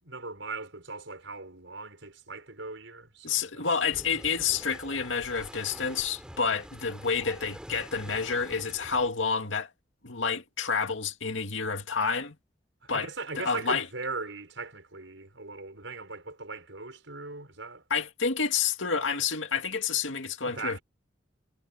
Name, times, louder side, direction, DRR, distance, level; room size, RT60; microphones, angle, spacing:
voice 1, 0.0-3.7 12.9-17.8 20.4-20.8, right 3 dB, 85° right, 6.2 m, -39 dB
voice 2, 3.2-9.7 10.0-12.4 12.9-13.1 13.4-13.9 17.9-20.8, left 5 dB, 90° left, 2.3 m, -29 dB
sound 1, 3.9-9.1, equal, 5° right, 3.0 m, -46 dB
head